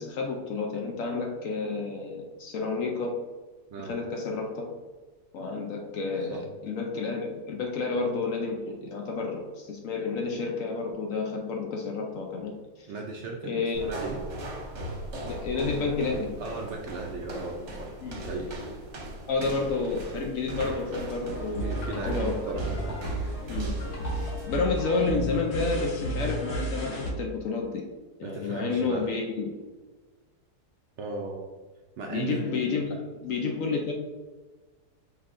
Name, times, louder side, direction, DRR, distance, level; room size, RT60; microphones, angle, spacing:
voice 1, 0.0-3.1 3.8-4.7 5.3-12.9 13.4-13.8 15.3-16.3 18.0-18.2 19.3-22.6 23.5-23.7 24.1-27.8 28.2-29.5 32.1-33.9, left 4 dB, 70° left, 1 dB, 0.8 m, -30 dB
voice 2, 12.9-14.2 16.4-18.5 21.6-23.1 28.2-29.1 31.0-31.4 32.0-32.4, right 3 dB, 75° right, 0 dB, 0.6 m, -36 dB
sound 1, 13.7-24.5, right 1 dB, 55° right, 1.0 m, -38 dB
sound 2, 21.2-27.1, right 1 dB, 45° left, 1.1 m, -32 dB
5.5 x 3.3 x 2.5 m, 1.3 s
omnidirectional pair, 1.8 m